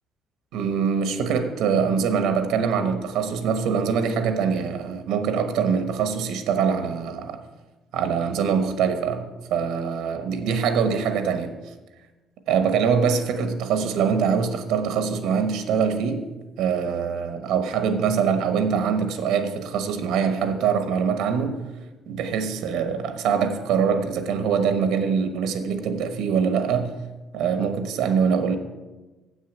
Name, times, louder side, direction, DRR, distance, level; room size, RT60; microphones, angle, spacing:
voice 1, 0.5-7.4 7.9-11.5 12.5-16.3 16.6-21.6 22.1-26.9 27.3-28.6, right 6 dB, 80° right, 8 dB, 1.1 m, -23 dB
7.9 x 6.4 x 8.0 m, 1.2 s
cardioid pair, 165°, 0 cm